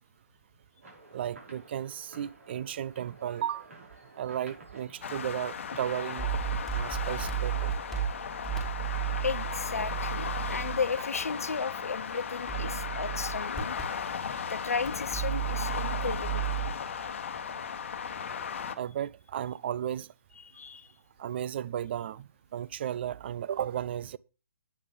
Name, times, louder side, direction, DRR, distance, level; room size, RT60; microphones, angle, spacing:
sound 1, 0.8-6.3, right 3 dB, 65° right, 5.6 m, -52 dB
voice 1, 1.1-3.7 4.2-6.3 6.7-7.7 18.8-20.1 21.2-24.2, right 10 dB, 45° right, 0.5 m, -34 dB
sound 2, 5.0-18.7, left 7 dB, 55° left, 1.1 m, -36 dB
sound 3, 6.2-18.1, right 11 dB, 5° left, 4.9 m, -35 dB
voice 2, 9.2-13.8 14.5-16.5 20.5-20.9, left 5 dB, 75° left, 0.8 m, -34 dB
9.8 x 6.7 x 5.2 m
figure-of-eight pair, 135°, 8 cm